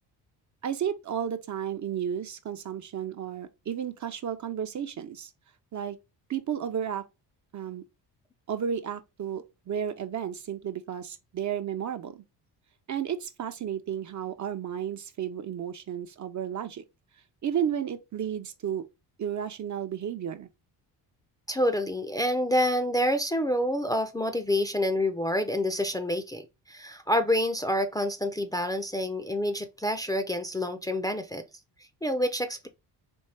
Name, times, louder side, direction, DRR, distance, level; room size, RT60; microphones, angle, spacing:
voice 1, 0.6-5.3 5.7-6.0 6.3-7.1 7.5-7.8 8.5-12.2 12.9-16.8 17.4-18.9 19.2-20.5, right 8 dB, 45° right, 0.6 m, -33 dB
voice 2, 21.5-31.4 32.0-32.7, left 1 dB, 10° left, 0.5 m, -27 dB
4.3 x 3.0 x 3.3 m
cardioid pair, 90°, 42 cm